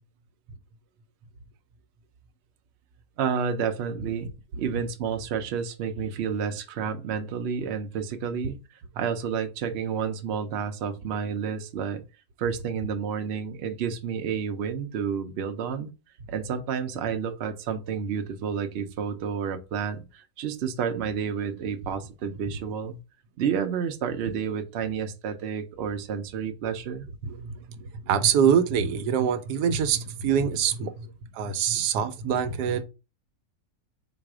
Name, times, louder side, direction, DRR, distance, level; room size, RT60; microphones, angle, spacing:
voice 1, 3.2-4.3 4.6-8.6 9.0-12.0 12.4-15.9 16.3-23.0 23.4-27.1, right 7 dB, 60° right, 0.7 m, -30 dB
voice 2, 27.2-32.8, right 7 dB, 90° right, 1.2 m, -25 dB
4.0 x 2.6 x 4.8 m
omnidirectional pair, 1.7 m